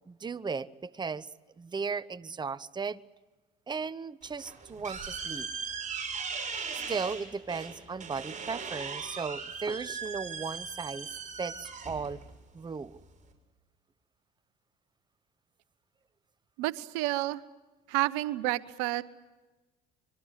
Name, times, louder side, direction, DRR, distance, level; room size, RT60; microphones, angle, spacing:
voice 1, 0.1-1.3 1.6-3.0 3.7-5.5 6.9-11.1 11.4-12.2 12.5-13.0, right 5 dB, 20° right, 18 dB, 0.9 m, -36 dB
sound 1, 4.2-13.3, right 5 dB, 35° right, 6.5 m, -39 dB
voice 2, 16.6-17.4 17.9-19.0, right 18 dB, 80° right, 17 dB, 1.0 m, -30 dB
25.0 x 23.0 x 8.1 m, 1.2 s
supercardioid pair, 75°, 21 cm